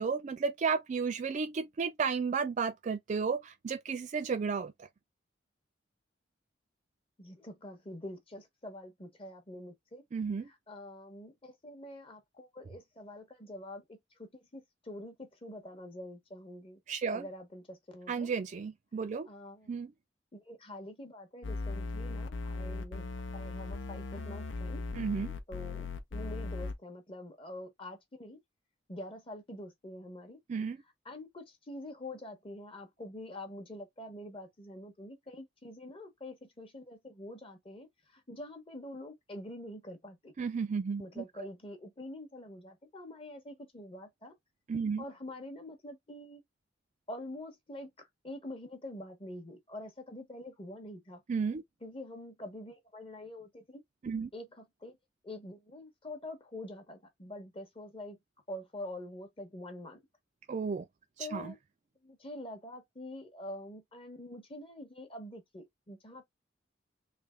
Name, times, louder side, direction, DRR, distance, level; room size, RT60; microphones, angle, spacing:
voice 1, 0.0-4.7 10.1-10.5 16.9-17.2 18.1-19.3 19.7-19.9 24.9-25.3 30.5-30.8 40.4-41.5 44.7-45.0 51.3-51.6 54.0-54.3 60.5-60.9 61.2-61.5, right 5 dB, 40° right, 0.3 m, -33 dB
voice 2, 7.2-10.0 10.5-16.8 17.1-18.3 19.2-19.8 20.3-23.1 23.3-24.8 25.5-28.4 28.9-30.4 31.0-40.3 41.0-44.3 45.0-46.4 47.1-51.2 51.8-53.8 54.3-55.0 55.2-58.2 58.5-60.0 61.2-61.6 62.0-66.2, left 1 dB, 30° left, 0.8 m, -46 dB
sound 1, 21.4-26.7, left 3 dB, 85° left, 0.7 m, -38 dB
3.3 x 2.8 x 3.5 m
head